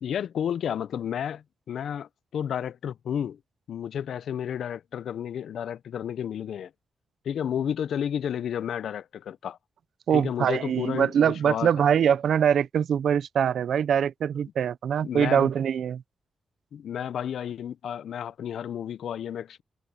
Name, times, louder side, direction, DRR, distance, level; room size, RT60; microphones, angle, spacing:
voice 1, 0.0-3.4 3.7-6.7 7.2-9.6 10.1-11.7 15.0-15.5 16.7-19.6, left 9 dB, 90° left, 0.5 m, -31 dB
voice 2, 10.1-16.0, right 8 dB, 80° right, 0.6 m, -23 dB
wide cardioid pair, 145°, 0 cm